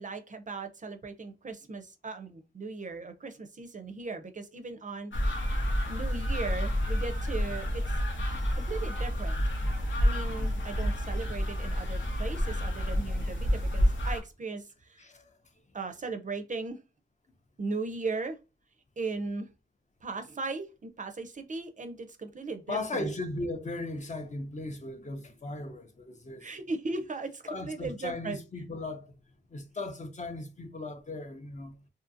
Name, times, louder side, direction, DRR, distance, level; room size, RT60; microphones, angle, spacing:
voice 1, 0.0-5.4 5.9-8.0 8.5-9.4 10.0-15.0 15.7-16.8 17.6-18.4 19.0-19.5 20.0-23.1 26.4-28.4, right 3 dB, 45° right, 0.4 m, -37 dB
sound 1, 5.1-14.2, equal, 90° left, 0.7 m, -29 dB
voice 2, 15.0-15.4 22.7-26.6 27.5-29.1 29.5-31.8, left 2 dB, 40° left, 0.5 m, -37 dB
2.6 x 2.5 x 2.5 m
wide cardioid pair, 105°, 19 cm